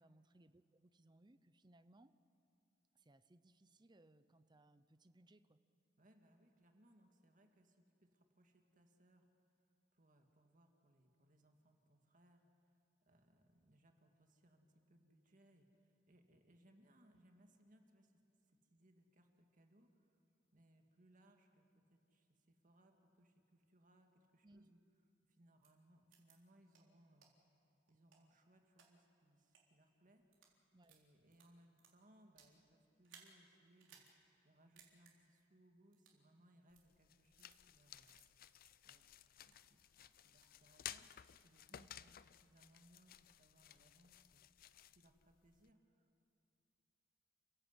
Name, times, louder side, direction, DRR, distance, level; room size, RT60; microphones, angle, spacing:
voice 1, 0.0-2.1 2.9-5.6 24.4-24.7 30.7-30.9 41.7-41.9, right 1 dB, 25° right, 12 dB, 0.7 m, -67 dB
voice 2, 6.0-9.3 9.9-12.4 13.0-18.1 18.5-20.2 20.5-24.8 25.3-27.3 27.9-30.2 30.9-34.0 34.4-38.1 38.8-39.1 39.5-44.5 44.9-46.2, right 1 dB, 45° right, 4 dB, 2.0 m, -70 dB
sound 1, 25.6-25.7 26.1-26.3 26.7-26.8 27.2-27.3 27.9-28.9 29.4-29.6 30.2-30.5 30.8-32.6 33.0-33.3 33.8-34.1 34.4-34.5 34.8-35.1 35.9-36.2 36.7-36.8 37.4-37.6 38.1-38.2 38.6-38.7 39.1-39.7 40.0-40.6, right 7 dB, 90° right, 3.9 m, -66 dB
sound 2, 36.7-45.7, left 11 dB, 50° left, 0.5 m, -57 dB
29.0 x 16.0 x 8.1 m, 2.6 s
head